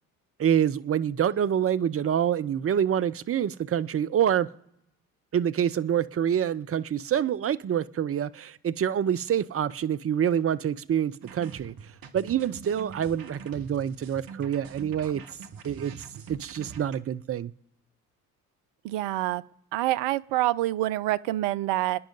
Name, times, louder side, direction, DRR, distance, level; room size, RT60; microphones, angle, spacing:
voice 1, 0.4-4.5 5.3-11.7 12.1-15.2 15.6-15.9 16.3-17.5, right 9 dB, 30° right, 0.6 m, -26 dB
sound 1, 11.2-17.0, right 6 dB, 50° right, 1.6 m, -44 dB
voice 2, 18.8-19.4 19.7-22.0, right 16 dB, 70° right, 0.7 m, -26 dB
27.0 x 10.0 x 4.0 m
hypercardioid pair, 55°, 44 cm